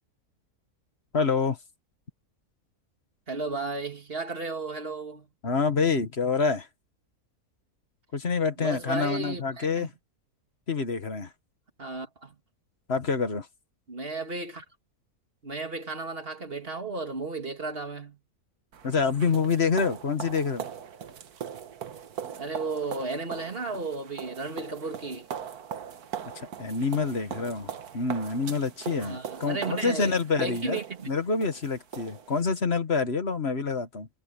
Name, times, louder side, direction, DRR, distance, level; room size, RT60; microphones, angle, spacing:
voice 1, 1.1-1.6 5.4-6.7 8.1-9.9 10.7-11.3 12.9-13.5 18.8-20.6 26.4-30.8 31.1-34.1, left 5 dB, 45° left, 1.8 m, -27 dB
voice 2, 3.3-5.3 8.6-9.9 11.8-12.4 13.9-14.6 15.4-18.2 22.4-25.3 29.0-31.1, right 3 dB, 40° right, 2.5 m, -34 dB
sound 1, 18.7-32.4, right 8 dB, 85° right, 1.7 m, -40 dB
omnidirectional pair, 1.6 m